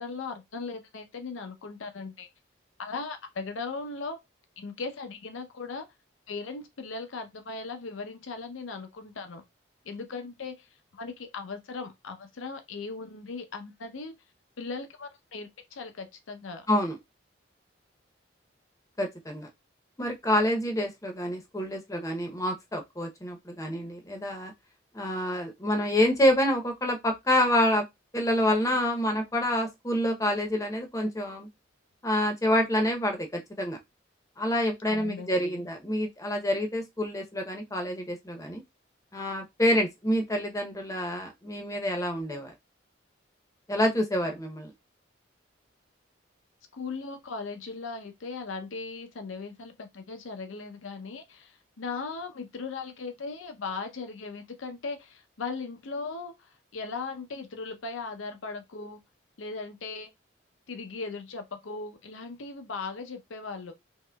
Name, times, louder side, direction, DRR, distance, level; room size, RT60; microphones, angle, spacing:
voice 1, 0.0-2.3 2.8-4.2 4.6-5.9 6.3-9.4 9.8-14.1 14.6-16.7 34.9-35.6 46.8-59.0 59.4-60.1 60.7-63.7, left 4 dB, 85° left, 0.6 m, -38 dB
voice 2, 19.0-19.5 20.0-24.5 24.9-27.9 28.1-31.5 32.0-33.8 34.4-38.6 39.1-42.5 43.7-44.7, left 1 dB, 15° left, 0.6 m, -27 dB
3.6 x 3.0 x 2.2 m
head